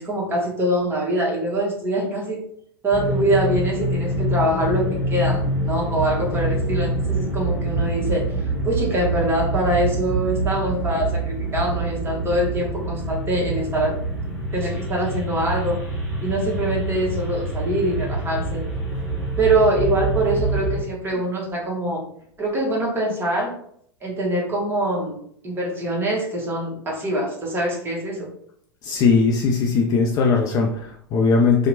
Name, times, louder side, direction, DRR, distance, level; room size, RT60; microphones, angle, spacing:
voice 1, 0.0-2.4 2.8-8.2 8.6-13.9 14.5-15.8 16.2-18.6 19.4-22.0 22.4-23.5 24.0-25.1 25.4-28.3, right 1 dB, 15° right, -2 dB, 0.9 m, -24 dB
sound 1, 2.9-20.8, right 2 dB, 5° left, 1.2 m, -26 dB
voice 2, 28.8-31.7, left 4 dB, 30° left, 1 dB, 0.3 m, -19 dB
2.8 x 2.0 x 2.6 m, 0.65 s
figure-of-eight pair, 90°, 13 cm